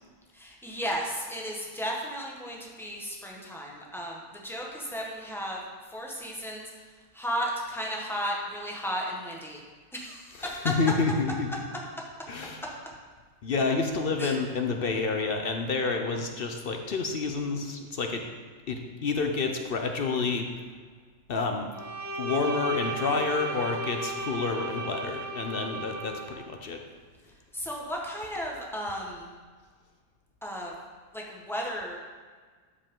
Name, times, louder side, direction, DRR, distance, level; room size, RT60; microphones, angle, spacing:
voice 1, 0.3-5.6 5.9-6.7 7.1-9.6 9.9-10.6 14.2-14.4 27.5-29.3 30.4-30.7 31.1-32.0, equal, ahead, -2 dB, 1.1 m, -34 dB
voice 2, 10.3-11.6 12.3-12.9 13.4-18.3 18.7-20.5 21.3-21.7 22.2-26.8, left 4 dB, 55° left, 4 dB, 0.7 m, -29 dB
Bowed string instrument, 21.7-26.4, right 2 dB, 70° right, 0.3 m, -35 dB
12.5 x 5.4 x 3.7 m, 1.5 s
omnidirectional pair, 1.5 m